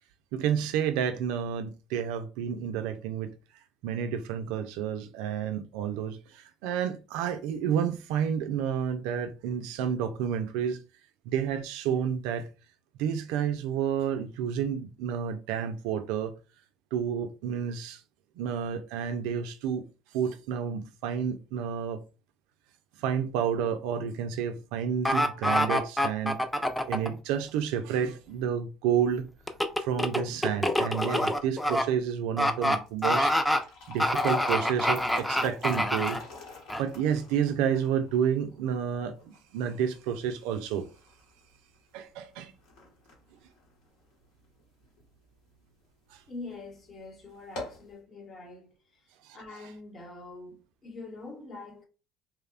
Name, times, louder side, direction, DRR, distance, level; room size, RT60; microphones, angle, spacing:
voice 1, 0.3-3.3 3.8-10.8 11.3-12.5 13.0-16.3 16.9-18.0 18.4-19.9 20.1-22.0 23.0-26.4 26.8-29.3 29.8-33.3 33.9-36.2 36.8-40.9 41.9-42.5 46.1-46.2 49.2-49.4, right 8 dB, 80° right, 0.3 m, -30 dB
sound 1, 25.1-27.1 29.5-31.8 32.4-32.8 33.0-33.6 34.0-36.2 36.7-36.8, left 1 dB, 5° left, 0.4 m, -26 dB
sound 2, 32.8-45.1 45.5-45.6 46.3-46.5 46.8-46.9 47.3-47.9, left 4 dB, 80° left, 1.1 m, -42 dB
voice 2, 46.3-51.8, left 3 dB, 40° left, 0.9 m, -44 dB
2.9 x 2.0 x 2.4 m
supercardioid pair, 90°, 0 cm